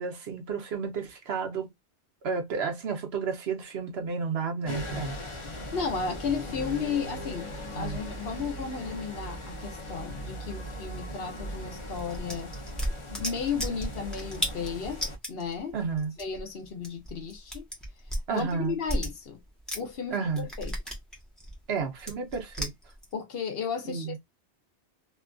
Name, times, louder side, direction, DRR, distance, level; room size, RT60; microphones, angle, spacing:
voice 1, 0.0-1.7 2.2-5.2 7.8-8.0 15.7-16.1 18.3-18.8 20.1-20.4 21.7-22.7 23.9-24.2, right 5 dB, 70° right, 1.0 m, -31 dB
sound 1, 4.6-15.2, equal, 35° left, 0.6 m, -39 dB
voice 2, 5.7-12.5 13.1-15.8 16.2-17.7 18.3-19.4 19.7-20.7 23.1-24.2, left 6 dB, 65° left, 0.9 m, -34 dB
sound 2, 12.0-20.0 20.3-23.1, equal, ahead, 0.9 m, -35 dB
2.8 x 2.4 x 2.3 m
omnidirectional pair, 1.1 m